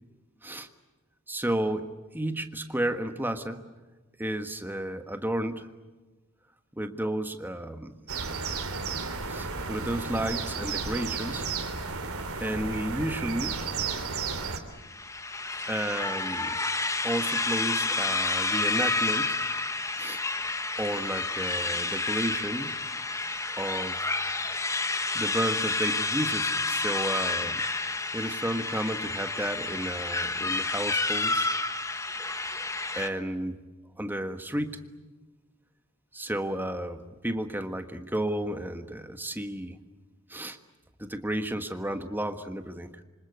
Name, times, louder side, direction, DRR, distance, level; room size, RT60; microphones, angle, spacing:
voice 1, 1.3-3.6 4.2-5.7 6.7-8.0 9.3-11.5 12.4-13.6 15.7-16.6 17.0-19.4 20.0-20.2 20.8-22.8 23.6-24.0 25.1-31.5 32.9-33.6 34.0-34.8 36.1-39.8 40.3-40.6 41.0-42.9, right 1 dB, 10° right, 7 dB, 1.5 m, -32 dB
sound 1, 8.1-14.6, right 4 dB, 70° right, 3.4 m, -33 dB
sound 2, 14.8-33.1, left 3 dB, 15° left, 1.2 m, -30 dB
27.0 x 25.5 x 8.1 m, 1.3 s
head